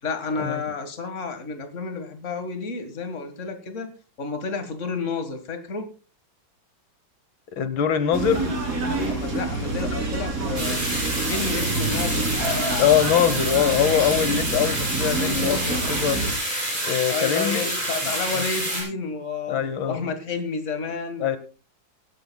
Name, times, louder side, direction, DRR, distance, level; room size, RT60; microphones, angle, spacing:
voice 1, 0.0-3.9 4.2-5.9 9.0-10.8 11.2-13.0 17.1-19.6 19.9-21.3, left 4 dB, 40° left, 8 dB, 1.9 m, -31 dB
voice 2, 7.6-8.4 12.8-16.2 16.8-17.7 18.0-18.1 19.5-20.1 21.2-21.4, left 9 dB, 85° left, 12 dB, 1.8 m, -23 dB
sound 1, 8.1-16.3, right 3 dB, 45° right, 3.3 m, -27 dB
sound 2, 10.6-18.8, right 1 dB, 20° right, 6.8 m, -28 dB
23.5 x 11.0 x 2.3 m, 0.34 s
omnidirectional pair, 2.1 m